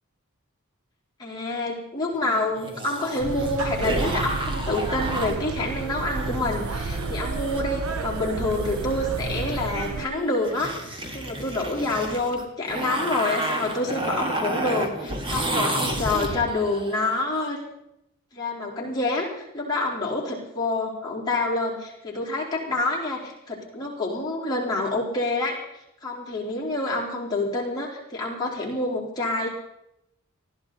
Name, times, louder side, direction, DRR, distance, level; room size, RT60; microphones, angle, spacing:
voice 1, 1.2-10.7 11.1-17.6 18.3-25.6 26.0-29.5, left 2 dB, 20° left, -5 dB, 4.0 m, -27 dB
sound 1, 2.2-17.2, right 1 dB, 25° right, 1.7 m, -32 dB
sound 2, 3.2-10.1, right 3 dB, 80° right, 0.7 m, -31 dB
20.0 x 14.5 x 4.2 m, 0.83 s
head